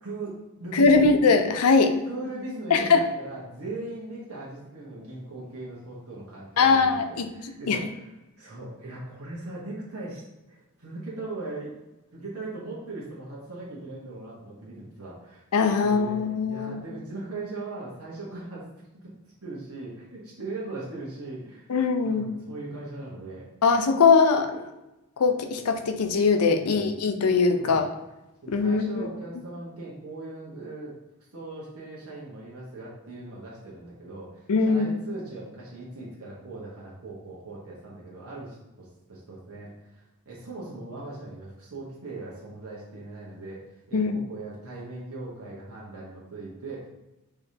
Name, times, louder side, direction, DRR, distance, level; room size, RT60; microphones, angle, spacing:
voice 1, 0.0-1.1 2.1-8.1 8.4-10.2 10.5-11.7 12.1-15.4 15.8-18.7 19.4-21.7 22.0-23.5 26.6-26.9 27.6-27.8 28.4-30.9 31.3-46.9, right 2 dB, 75° right, -6 dB, 1.0 m, -39 dB
voice 2, 0.7-2.0 2.7-3.0 6.6-7.3 7.7-7.8 15.5-16.8 21.7-22.3 23.6-24.7 25.2-27.9 28.5-29.1 34.5-34.9 43.9-44.2, left 4 dB, 85° left, 7 dB, 0.5 m, -21 dB
4.7 x 3.3 x 2.7 m, 0.99 s
head